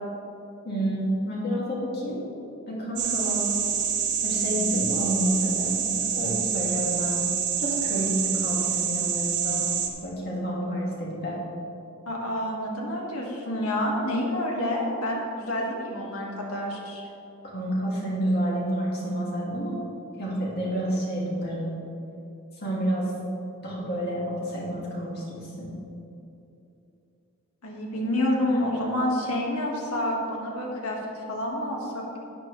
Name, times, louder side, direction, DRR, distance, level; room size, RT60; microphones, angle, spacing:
voice 1, 0.6-2.2 2.7-3.5 4.2-7.2 7.6-9.6 10.0-11.4 17.4-19.8 20.2-21.8 22.6-23.1 23.6-25.7, right 1 dB, 45° left, -5 dB, 2.4 m, -29 dB
sound 1, 3.0-9.9, right 8 dB, 50° right, 1.1 m, -27 dB
voice 2, 12.1-17.0 27.6-32.2, left 1 dB, 85° left, -2 dB, 1.8 m, -28 dB
12.0 x 9.4 x 3.3 m, 2.8 s
head